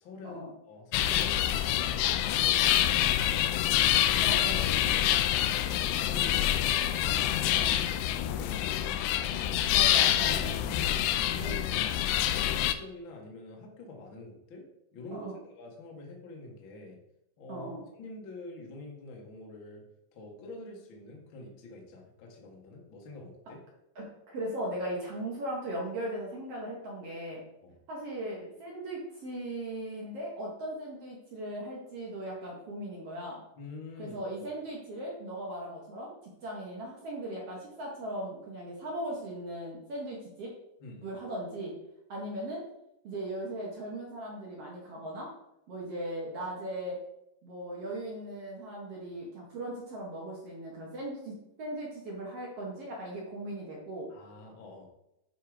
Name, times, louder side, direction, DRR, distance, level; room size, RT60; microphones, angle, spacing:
voice 1, 0.0-3.8 4.6-9.9 10.2-10.7 11.3-11.9 12.1-14.6 14.9-17.0 17.4-17.7 17.9-19.8 20.1-23.6 27.6-27.8 33.5-34.6 40.8-41.1 54.1-54.9, left 2 dB, 65° left, 0 dB, 1.2 m, -47 dB
sound 1, 0.9-12.7, left 12 dB, 85° left, 2.5 m, -26 dB
voice 2, 4.2-4.6 7.5-7.8 9.7-10.8 11.4-11.6 15.1-15.3 17.5-17.8 23.9-24.1 24.3-27.4 27.9-33.4 34.0-40.5 41.0-41.7 42.1-42.7 43.0-45.3 45.7-47.0 47.4-54.1, right 1 dB, 60° right, -3 dB, 1.6 m, -38 dB
9.9 x 3.7 x 5.0 m, 0.84 s
omnidirectional pair, 4.8 m